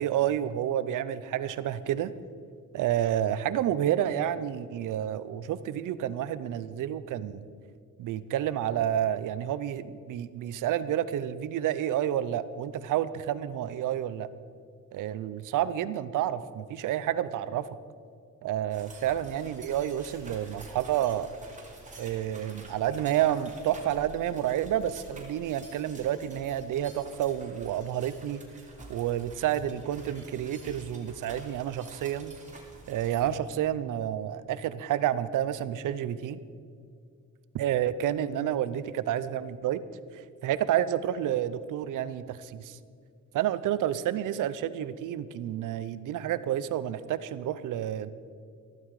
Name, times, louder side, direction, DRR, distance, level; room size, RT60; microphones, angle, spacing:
voice 1, 0.0-2.1 2.7-7.5 8.0-14.3 14.9-17.7 18.4-21.3 22.0-28.4 28.9-32.3 32.9-36.4 37.5-39.8 40.1-42.8 43.3-48.1, right 11 dB, 85° right, 15 dB, 0.7 m, -29 dB
sound 1, 18.7-33.3, right 2 dB, 25° right, 2.7 m, -49 dB
13.5 x 12.5 x 4.8 m, 2.3 s
cardioid pair, 100°, 31 cm